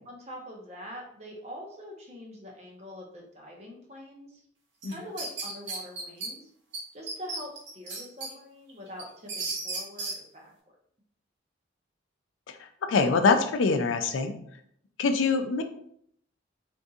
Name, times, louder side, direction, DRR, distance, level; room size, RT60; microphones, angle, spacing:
voice 1, 0.0-4.4 4.8-6.5 6.9-10.5, equal, 35° right, -1 dB, 0.7 m, -44 dB
sound 1, 4.8-6.3 6.7-6.8 7.1-8.3 8.7-10.2, right 3 dB, 70° right, 0.9 m, -34 dB
voice 2, 12.5-14.3 15.0-15.6, left 4 dB, 80° left, 7 dB, 0.4 m, -24 dB
3.9 x 2.6 x 2.4 m, 0.66 s
head